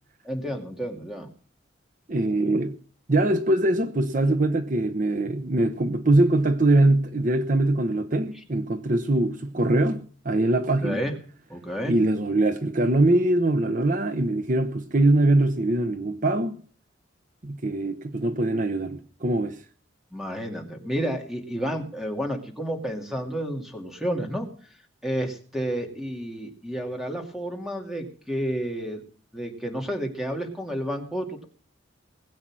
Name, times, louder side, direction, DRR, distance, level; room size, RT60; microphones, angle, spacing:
voice 1, 0.2-1.3 10.8-11.1 11.5-11.9 20.1-24.5 25.0-29.0 29.3-31.4, equal, ahead, 2.5 m, -30 dB
voice 2, 2.1-2.8 3.1-11.0 11.9-16.6 17.4-19.6, right 2 dB, 45° right, 0.9 m, -22 dB
20.5 x 8.8 x 6.2 m
head